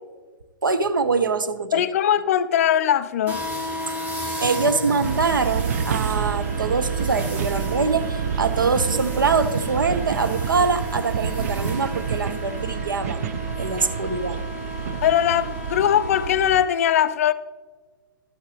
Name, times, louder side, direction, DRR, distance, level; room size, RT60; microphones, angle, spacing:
voice 1, 0.6-1.8 4.4-14.4, right 4 dB, 70° right, 0.8 m, -24 dB
voice 2, 1.7-3.4 15.0-17.3, left 10 dB, 40° left, 0.4 m, -20 dB
sound 1, 3.3-16.3, left 1 dB, 15° right, 1.5 m, -34 dB
sound 2, 5.0-16.6, right 7 dB, 45° right, 0.4 m, -28 dB
12.5 x 8.1 x 3.3 m
figure-of-eight pair, 115°, 11 cm